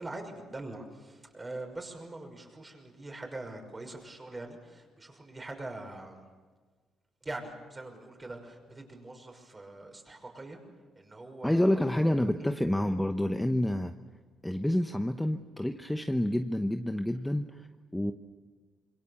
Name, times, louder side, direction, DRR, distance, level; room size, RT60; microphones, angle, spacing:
voice 1, 0.0-6.2 7.2-10.6 10.9-11.9 12.4-12.5, right 2 dB, 25° right, 3 dB, 5.8 m, -43 dB
voice 2, 11.4-13.9 14.4-17.7 17.9-18.1, left 1 dB, 5° left, 6 dB, 1.0 m, -28 dB
26.5 x 23.0 x 7.2 m, 1.4 s
cardioid pair, 90°, 0 cm